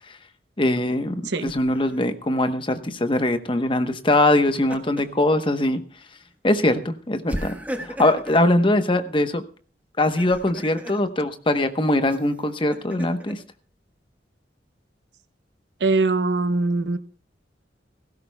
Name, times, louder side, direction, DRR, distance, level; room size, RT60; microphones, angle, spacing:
voice 1, 0.6-5.8 6.4-9.4 10.0-13.4, left 1 dB, 30° left, 9 dB, 1.0 m, -22 dB
Laughter, 1.4-2.0 4.3-5.2 5.6-5.8 7.3-8.4 10.0-11.0 12.1-13.3, equal, 10° right, 1.4 m, -36 dB
voice 2, 15.8-17.0, right 3 dB, 75° right, 11 dB, 0.8 m, -22 dB
17.5 x 16.0 x 2.2 m, 0.42 s
head